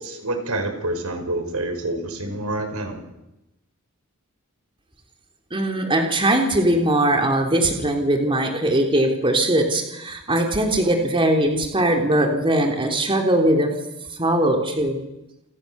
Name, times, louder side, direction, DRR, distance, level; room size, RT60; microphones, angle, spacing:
voice 1, 0.0-3.1, right 2 dB, 85° right, 6 dB, 5.4 m, -27 dB
voice 2, 5.5-13.7 14.1-15.0, right 1 dB, 25° right, 3 dB, 3.6 m, -20 dB
29.0 x 25.5 x 7.1 m, 0.93 s
head